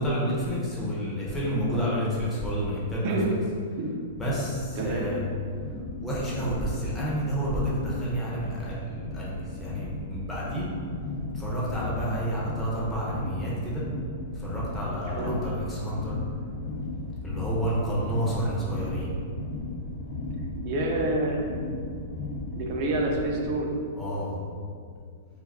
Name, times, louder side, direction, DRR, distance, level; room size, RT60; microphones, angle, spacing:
voice 1, 0.0-3.1 4.2-5.2 6.0-10.7 11.3-13.8 14.3-16.2 17.2-19.1 23.9-24.4, equal, 10° left, -8 dB, 0.6 m, -30 dB
sound 1, 4.0-23.5, left 1 dB, 65° left, 0.4 m, -36 dB
voice 2, 4.7-5.1 15.1-15.3 20.6-21.5 22.5-23.7, right 2 dB, 40° right, 0 dB, 0.4 m, -28 dB
2.4 x 2.2 x 3.4 m, 2.1 s
hypercardioid pair, 160°, 0 cm